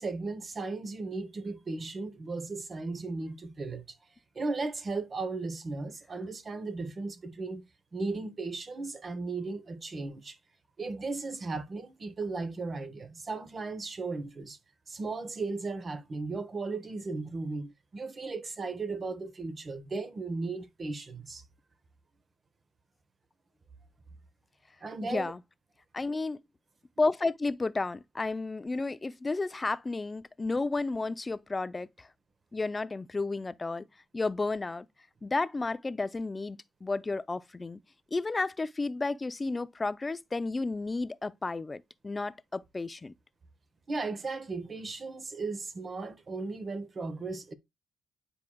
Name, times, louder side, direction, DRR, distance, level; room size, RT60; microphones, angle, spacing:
voice 1, 0.0-4.0 4.3-7.7 7.9-10.4 10.8-14.6 14.9-21.4 24.8-25.3 43.9-47.5, right 3 dB, 35° right, 1.1 m, -36 dB
voice 2, 25.9-26.4 27.0-32.1 32.5-33.8 34.1-34.9 35.2-37.8 38.1-43.1, left 3 dB, 25° left, 0.4 m, -32 dB
9.5 x 4.8 x 2.2 m
cardioid pair, 90°, 0 cm